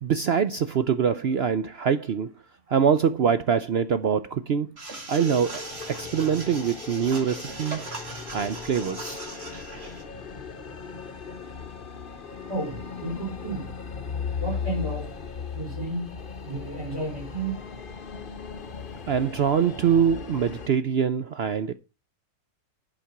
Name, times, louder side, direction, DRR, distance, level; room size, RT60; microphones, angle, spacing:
voice 1, 0.0-2.3 2.7-4.7 5.1-7.9 8.3-9.2 19.1-21.7, right 7 dB, 60° right, 0.7 m, -24 dB
sound 1, 4.8-10.0, right 3 dB, 40° right, 2.4 m, -39 dB
sound 2, 5.2-20.7, left 6 dB, 40° left, 1.1 m, -37 dB
voice 2, 12.5-13.7 14.4-15.1 15.5-16.1 16.4-17.6, right 2 dB, 15° right, 6.8 m, -32 dB
11.5 x 5.2 x 5.8 m
omnidirectional pair, 1.6 m